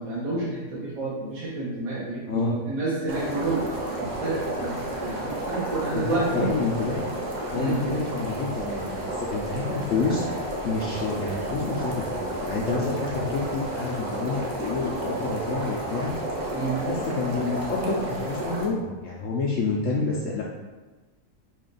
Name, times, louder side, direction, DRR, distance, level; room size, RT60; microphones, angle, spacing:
voice 1, 0.0-3.7 4.0-6.5 7.5-7.8 16.5-16.8, right 3 dB, 85° right, -8 dB, 1.6 m, -29 dB
sound 1, 3.1-18.7, right 1 dB, 55° right, 0.5 m, -31 dB
voice 2, 5.9-7.0 7.5-10.3 10.6-16.1 16.8-20.4, left 4 dB, 65° left, -4 dB, 0.8 m, -28 dB
5.0 x 2.4 x 3.8 m, 1.2 s
omnidirectional pair, 1.7 m